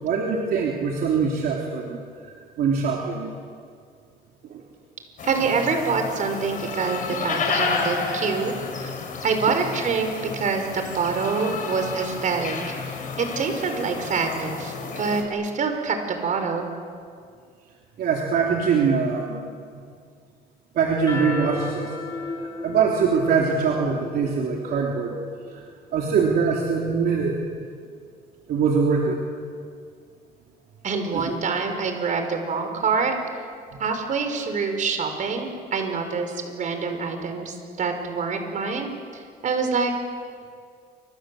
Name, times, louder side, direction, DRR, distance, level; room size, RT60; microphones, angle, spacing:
voice 1, 0.0-3.3 4.5-4.6 18.0-19.5 20.8-22.0 22.4-25.2 25.5-25.6 25.9-27.4 28.5-29.2 31.1-31.2, right 5 dB, 65° right, -1 dB, 3.5 m, -23 dB
sound 1, 5.2-15.2, left 4 dB, 50° left, 6.3 m, -31 dB
voice 2, 5.2-8.9 9.2-10.1 10.3-12.6 12.9-16.7 30.8-33.2 33.8-39.9, right 5 dB, 50° right, 6 dB, 5.3 m, -26 dB
sound 2, 20.9-25.7, left 3 dB, 25° left, 7.6 m, -34 dB
28.5 x 26.5 x 7.9 m, 2.2 s
cardioid pair, 110°, 17 cm